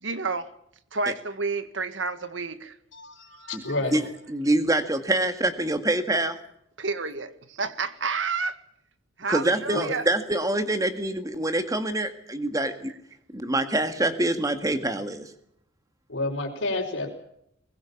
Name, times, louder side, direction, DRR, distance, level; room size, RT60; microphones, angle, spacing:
voice 1, 0.0-0.5 0.9-2.7 3.3-3.5 6.8-8.6 9.2-10.0, right 4 dB, 70° right, 1.7 m, -30 dB
voice 2, 2.9-4.0 9.7-9.9 16.1-17.1, left 2 dB, 70° left, 4.6 m, -30 dB
voice 3, 4.3-6.4 9.3-12.9 13.3-15.3, right 1 dB, 20° right, 1.9 m, -25 dB
22.0 x 20.5 x 7.3 m
head